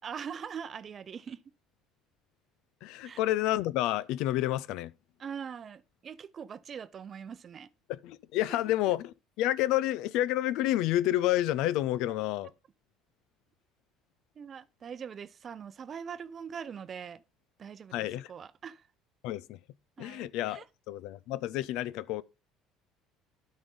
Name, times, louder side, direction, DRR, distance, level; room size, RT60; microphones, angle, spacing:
voice 1, 0.0-1.4 3.0-3.2 5.2-7.7 8.5-8.6 14.4-17.2 17.6-18.9 20.0-20.6, right 7 dB, 40° right, 0.6 m, -42 dB
voice 2, 2.8-4.9 7.9-12.5 17.9-18.3 19.2-19.6 20.0-22.2, left 14 dB, 70° left, 0.4 m, -29 dB
12.5 x 5.3 x 3.8 m
hypercardioid pair, 70°, 0 cm